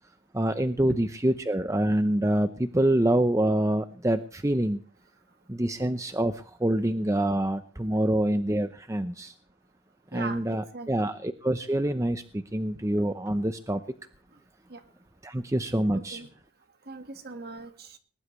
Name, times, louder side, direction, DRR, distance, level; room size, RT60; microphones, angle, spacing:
voice 1, 0.3-4.8 5.5-9.3 10.1-13.8 15.2-16.2, right 1 dB, 15° right, 10 dB, 0.7 m, -26 dB
voice 2, 10.1-10.9 14.7-14.8 15.9-16.3 16.9-18.0, right 3 dB, 50° right, 8 dB, 1.8 m, -40 dB
20.5 x 20.0 x 3.2 m, 0.38 s
head